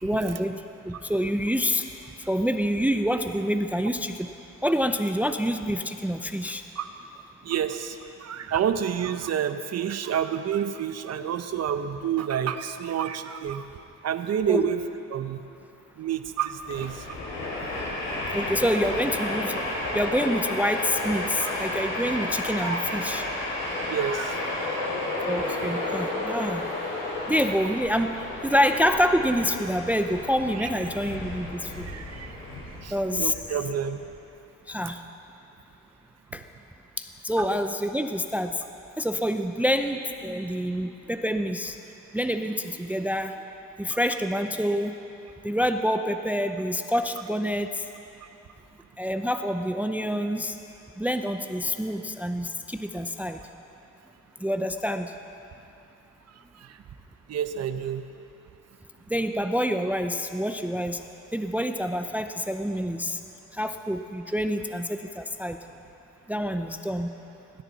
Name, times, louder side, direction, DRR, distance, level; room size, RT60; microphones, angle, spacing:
voice 1, 0.0-0.6 0.9-1.8 2.3-4.3 4.6-6.6 14.5-14.7 18.3-19.6 19.9-23.2 25.3-26.6 27.3-28.1 28.4-31.9 32.9-33.3 34.7-35.0 36.3-36.4 37.0-38.5 39.0-41.8 42.1-43.3 43.8-44.9 45.4-47.7 49.0-50.5 51.0-53.4 54.4-55.1 59.1-61.0 61.3-63.2 63.6-65.6 66.3-67.1, equal, 5° right, 7 dB, 0.5 m, -27 dB
voice 2, 7.4-13.7 14.0-14.8 15.1-15.4 16.0-17.0 21.4-21.5 22.6-22.8 23.9-24.4 30.6-30.7 31.8-32.4 32.8-34.0 37.4-37.5 56.7-56.8 57.3-58.0, right 9 dB, 55° right, 9 dB, 0.9 m, -29 dB
Train, 16.5-34.1, left 2 dB, 85° left, 4.8 m, -32 dB
19.5 x 16.0 x 4.1 m, 2.8 s
cardioid pair, 90°, 30 cm